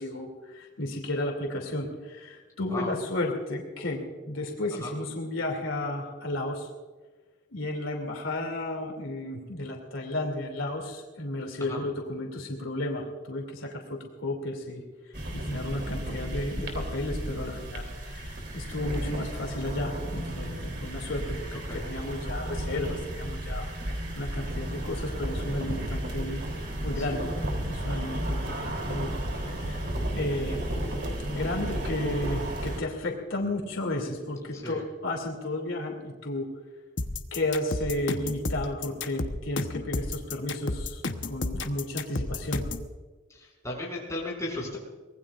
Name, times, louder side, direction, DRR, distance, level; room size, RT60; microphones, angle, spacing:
voice 1, 0.0-6.7 7.5-14.8 15.3-23.7 24.1-26.4 26.8-27.3 27.7-29.8 30.1-30.7 31.3-36.5 37.3-42.6, left 1 dB, 75° left, 1 dB, 2.7 m, -33 dB
sound 1, 15.1-32.8, right 1 dB, 55° right, 3.3 m, -33 dB
voice 2, 21.3-21.8 27.0-27.2 34.5-34.8 43.3-44.8, left 1 dB, 15° left, -3 dB, 6.0 m, -36 dB
sound 2, 37.0-42.9, left 2 dB, 60° left, 1.0 m, -32 dB
24.5 x 19.5 x 2.5 m, 1.3 s
head